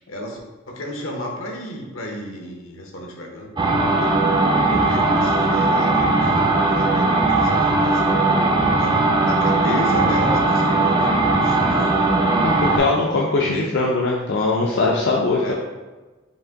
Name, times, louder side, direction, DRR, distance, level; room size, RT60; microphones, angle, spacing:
voice 1, 0.1-0.4 0.7-3.5 4.0-4.2 4.7-8.0 8.8-12.6 13.3-13.7 15.3-15.5, left 1 dB, 75° left, 0 dB, 0.9 m, -33 dB
sound 1, 3.6-12.8, right 2 dB, 20° right, 0.5 m, -18 dB
voice 2, 12.4-15.5, left 3 dB, 60° left, -3 dB, 0.5 m, -21 dB
5.3 x 2.6 x 3.6 m, 1.2 s
head